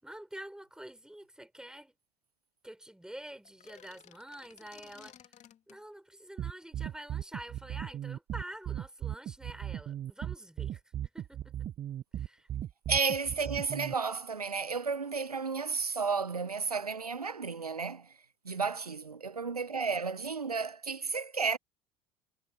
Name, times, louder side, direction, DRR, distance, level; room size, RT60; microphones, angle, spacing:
voice 1, 0.0-1.9 2.6-5.3 5.7-10.8 11.1-11.5 12.1-12.5 18.5-18.6, right 1 dB, 5° right, 6.0 m, -47 dB
sound 1, 3.5-5.8, left 9 dB, 40° left, 2.7 m, -56 dB
sound 2, 6.4-13.9, right 11 dB, 40° right, 1.2 m, -37 dB
voice 2, 12.9-18.1 18.4-21.6, right 5 dB, 90° right, 1.1 m, -32 dB
figure-of-eight pair, 65°, 19 cm